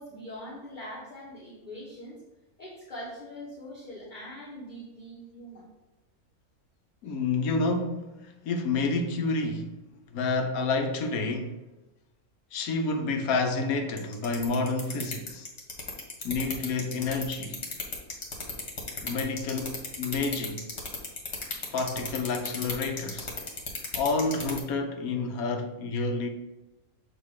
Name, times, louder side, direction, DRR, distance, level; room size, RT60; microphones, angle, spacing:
voice 1, 0.0-2.2 2.6-5.7, equal, 35° left, 1.3 m, -42 dB
voice 2, 7.0-9.8 10.1-11.6 12.5-15.5 16.2-17.6 19.0-20.7 21.7-23.3 23.9-26.3, left 3 dB, 75° left, 1.1 m, -29 dB
sound 1, 14.0-24.6, left 4 dB, 50° left, 1.6 m, -33 dB
7.1 x 3.0 x 4.8 m
omnidirectional pair, 1.6 m